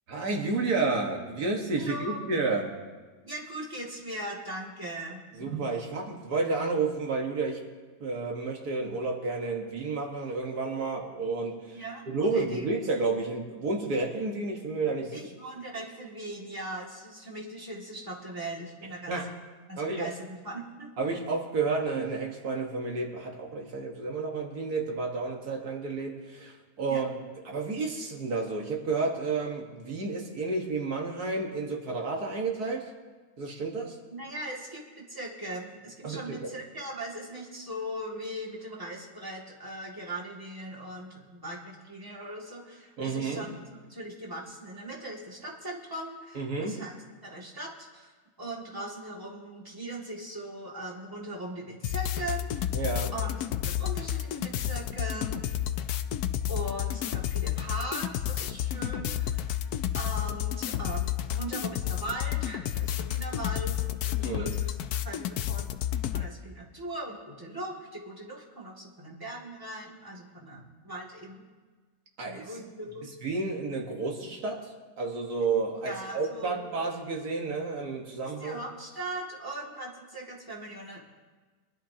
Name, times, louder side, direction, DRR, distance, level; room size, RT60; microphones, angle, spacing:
voice 1, 0.1-2.7 5.3-7.6 8.0-11.8 12.1-15.3 19.1-19.3 19.8-20.1 21.0-27.1 27.5-32.9 33.4-34.0 36.0-36.5 43.0-43.5 46.4-46.8 52.7-53.1 64.2-64.5 72.2-72.5 73.2-78.6, right 3 dB, 85° right, 0 dB, 2.0 m, -31 dB
voice 2, 1.8-2.2 3.2-5.2 11.7-12.7 15.1-19.2 19.7-21.1 26.9-27.0 34.1-46.9 47.2-52.8 53.1-55.4 56.5-59.6 59.9-63.8 64.0-64.7 65.0-71.4 72.2-73.1 75.8-76.6 78.2-81.0, right 1 dB, 15° right, -4 dB, 2.3 m, -39 dB
sound 1, 51.8-66.3, left 11 dB, 85° left, 1.1 m, -31 dB
24.0 x 11.0 x 2.9 m, 1.4 s
omnidirectional pair, 1.6 m